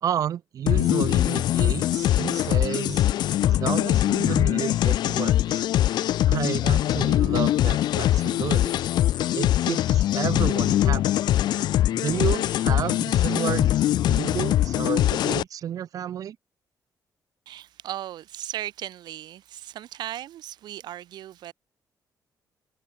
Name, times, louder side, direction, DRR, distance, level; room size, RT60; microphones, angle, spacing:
voice 1, 0.0-3.0 3.4-5.7 6.3-8.8 9.3-11.0 11.9-13.7 14.1-16.4, right 10 dB, 55° right, 2.4 m, -31 dB
sound 1, 0.7-15.4, left 13 dB, 75° left, 1.2 m, -22 dB
voice 2, 17.5-21.5, right 12 dB, 75° right, 4.6 m, -37 dB
cardioid pair, 170°, 7 cm